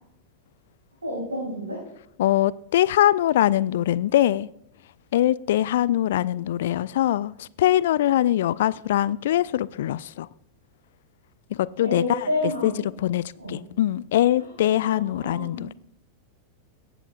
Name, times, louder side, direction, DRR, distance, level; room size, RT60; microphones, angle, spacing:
voice 1, 1.0-1.8 11.8-12.8 13.4-13.6 14.8-15.6, left 1 dB, 75° right, 3.9 m, -30 dB
voice 2, 2.2-4.5 5.1-10.3 11.6-12.3 12.6-12.7 13.0-15.7, left 13 dB, 55° left, 0.3 m, -22 dB
22.0 x 9.0 x 2.4 m
figure-of-eight pair, 90°, 0 cm